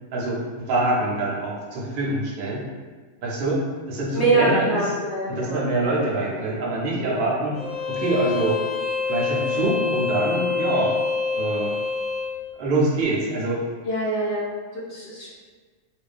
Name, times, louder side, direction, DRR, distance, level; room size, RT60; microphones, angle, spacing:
voice 1, 0.1-2.6 3.2-3.6 3.9-4.8 5.3-7.6 7.8-8.6 9.1-10.9 11.3-11.7 12.6-13.6, right 2 dB, 55° right, -4 dB, 0.6 m, -25 dB
voice 2, 4.1-6.0 6.3-6.4 7.0-7.3 13.8-15.3, right 2 dB, 60° left, -6 dB, 0.9 m, -25 dB
Bowed string instrument, 7.5-12.4, left 4 dB, 80° left, 1.6 m, -26 dB
2.6 x 2.3 x 2.4 m, 1.4 s
omnidirectional pair, 1.4 m